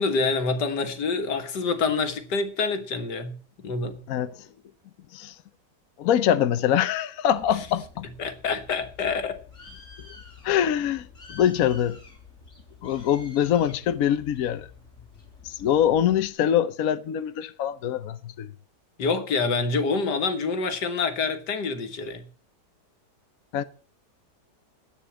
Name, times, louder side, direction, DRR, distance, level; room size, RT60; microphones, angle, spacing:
voice 1, 0.0-3.3 3.6-4.0 8.2-9.4 19.0-22.3, left 4 dB, 85° left, 2.1 m, -26 dB
voice 2, 4.1-4.4 5.1-5.3 6.0-8.1 10.4-12.0 12.8-14.7 15.4-18.5 23.5-23.6, left 10 dB, 65° left, 1.1 m, -24 dB
Bird, 7.3-16.3, left 4 dB, 45° left, 3.5 m, -48 dB
11.0 x 8.7 x 8.4 m
omnidirectional pair, 1.8 m